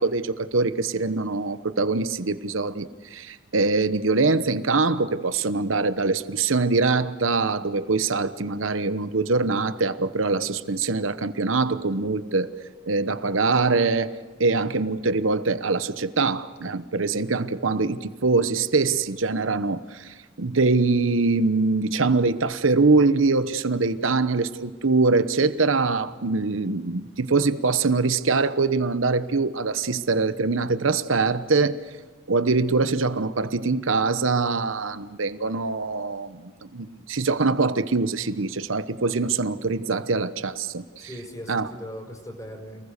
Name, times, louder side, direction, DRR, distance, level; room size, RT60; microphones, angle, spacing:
voice 1, 0.0-2.9 3.1-12.5 12.9-31.8 32.3-41.1 41.5-41.7, right 3 dB, 80° right, 13 dB, 1.0 m, -23 dB
voice 2, 41.0-42.9, equal, 15° left, 2 dB, 4.7 m, -39 dB
28.5 x 20.0 x 6.7 m, 1.4 s
head